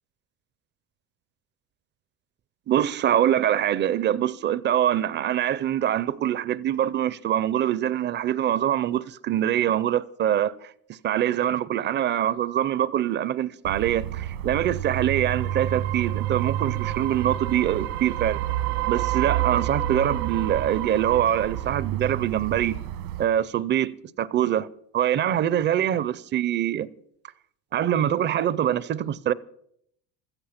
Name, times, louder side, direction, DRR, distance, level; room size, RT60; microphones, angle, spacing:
voice 1, 2.7-10.7 11.0-18.4 18.9-22.7 23.2-24.7 24.9-26.9 27.7-29.3, right 11 dB, 25° right, 0.5 m, -24 dB
sound 1, 13.6-23.2, right 12 dB, 80° right, 1.6 m, -29 dB
16.0 x 14.0 x 5.8 m
cardioid pair, 145°, 42 cm